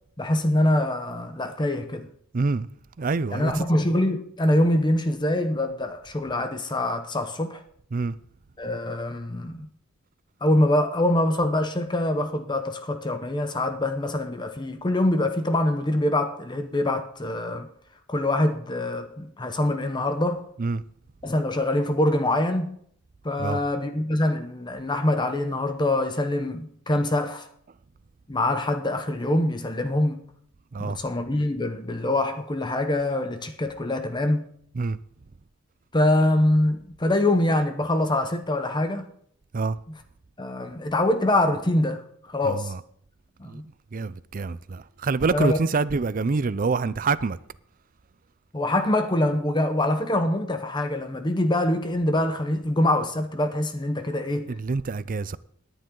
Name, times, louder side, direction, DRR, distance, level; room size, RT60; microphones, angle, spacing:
voice 1, 0.2-2.1 3.3-7.6 8.6-9.7 10.4-17.7 18.1-20.4 21.2-22.8 23.2-27.5 28.3-30.2 30.8-34.5 35.9-39.1 39.9-40.0 40.4-42.7 43.4-43.6 45.3-45.6 48.5-54.5, left 1 dB, 20° left, 0.8 m, -24 dB
voice 2, 2.3-2.7 3.0-3.6 7.9-8.2 20.6-20.8 23.4-23.6 30.7-31.0 34.8-35.0 39.5-39.8 42.4-42.8 43.5-43.6 43.9-47.4 54.5-55.4, right 4 dB, 40° right, 0.5 m, -26 dB
18.5 x 10.0 x 3.9 m
head